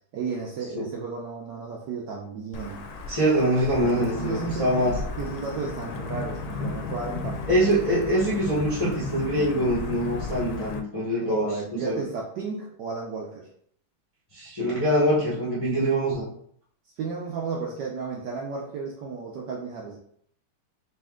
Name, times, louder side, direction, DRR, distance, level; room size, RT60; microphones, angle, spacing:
voice 1, 0.1-2.8 3.8-4.9 5.2-8.2 11.2-13.5 17.0-20.0, right 5 dB, 75° right, -1 dB, 1.0 m, -34 dB
Wind / Thunder / Rain, 2.5-10.8, left 3 dB, 75° left, 1.2 m, -34 dB
voice 2, 3.1-5.0 7.5-12.0 14.3-16.3, right 1 dB, 40° left, -8 dB, 0.4 m, -24 dB
4.2 x 2.5 x 3.6 m, 0.65 s
omnidirectional pair, 2.4 m